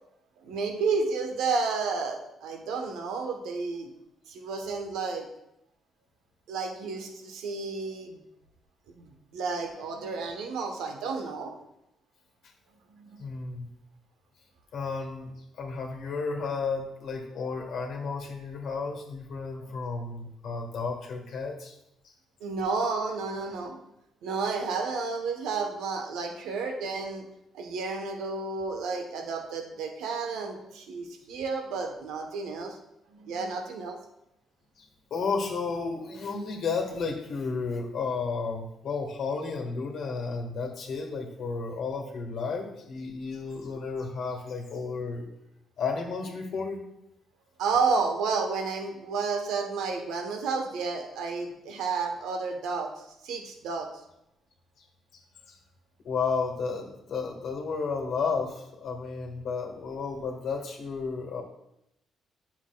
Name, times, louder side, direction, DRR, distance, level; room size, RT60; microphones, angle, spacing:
voice 1, 0.4-3.9 4.3-5.3 6.5-8.2 8.9-11.5 12.9-13.2 19.6-19.7 22.4-23.8 24.2-27.2 27.5-32.8 33.1-34.0 47.6-53.9, right 4 dB, 90° right, 4 dB, 1.0 m, -31 dB
voice 2, 13.2-13.7 14.7-21.8 22.0-22.1 34.8-45.3 45.8-46.8 55.1-55.6 56.0-61.4, left 4 dB, 70° left, 1 dB, 1.6 m, -32 dB
10.0 x 7.0 x 2.3 m, 0.82 s
cardioid pair, 90°, 0 cm